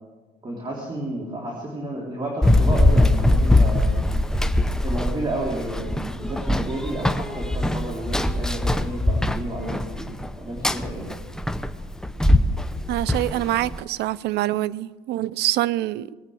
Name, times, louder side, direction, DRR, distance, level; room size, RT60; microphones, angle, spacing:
voice 1, 0.4-4.0 4.8-10.1 10.4-11.1, right 1 dB, 25° right, 3.6 m, -31 dB
Run, 2.4-13.8, left 1 dB, 5° left, 0.7 m, -22 dB
voice 2, 12.9-16.1, right 15 dB, 75° right, 0.5 m, -25 dB
20.0 x 9.2 x 7.9 m
cardioid pair, 110°, 17 cm